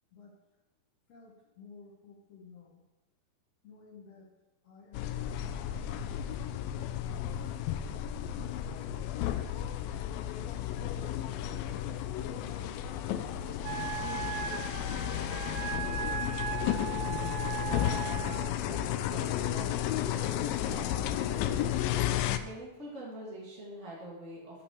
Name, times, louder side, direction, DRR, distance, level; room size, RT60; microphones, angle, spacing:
voice 1, 1.1-2.8 3.6-4.3 4.6-5.4 8.3-11.5 12.3-14.6, left 4 dB, 60° left, -3 dB, 2.0 m, -55 dB
sound 1, 4.9-22.4, left 11 dB, 85° left, 2.3 m, -33 dB
Wind instrument woodwind instrument, 13.6-18.5, right 10 dB, 85° right, 1.6 m, -37 dB
voice 2, 16.9-21.8 22.0-24.6, right 1 dB, 25° right, -5 dB, 1.6 m, -46 dB
8.7 x 5.8 x 6.2 m, 1.0 s
omnidirectional pair, 4.1 m